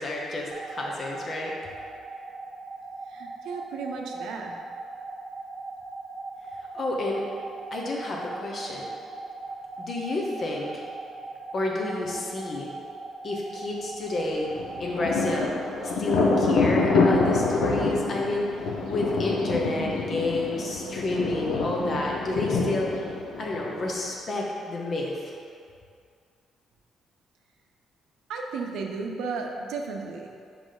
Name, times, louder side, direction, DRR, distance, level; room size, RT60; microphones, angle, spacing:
voice 1, 0.0-1.5 6.7-7.2 7.7-8.9 9.8-10.8 11.5-12.7 13.2-14.5 14.8-15.5 16.0-18.5 18.9-23.0 23.4-25.3, left 2 dB, 45° left, -2 dB, 1.1 m, -30 dB
sound 1, 0.5-15.5, right 3 dB, 45° right, 0.6 m, -39 dB
voice 2, 3.1-4.6 28.3-30.3, right 4 dB, 85° right, 1 dB, 0.6 m, -34 dB
Thunder, 14.5-24.0, left 3 dB, 85° left, 0.7 m, -26 dB
5.1 x 4.9 x 3.9 m, 2.3 s
cardioid pair, 90°, 0 cm